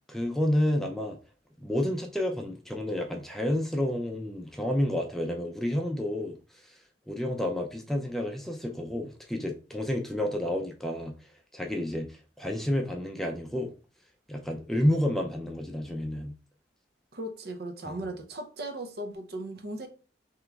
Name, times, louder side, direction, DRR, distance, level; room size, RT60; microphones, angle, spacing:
voice 1, 0.1-1.2 1.6-6.4 6.6-6.7 7.1-11.1 11.5-13.7 14.3-16.3 17.9-18.0, left 1 dB, ahead, 0.5 m, -30 dB
voice 2, 17.1-19.9, right 1 dB, 60° right, 0.7 m, -37 dB
3.6 x 3.0 x 3.4 m
head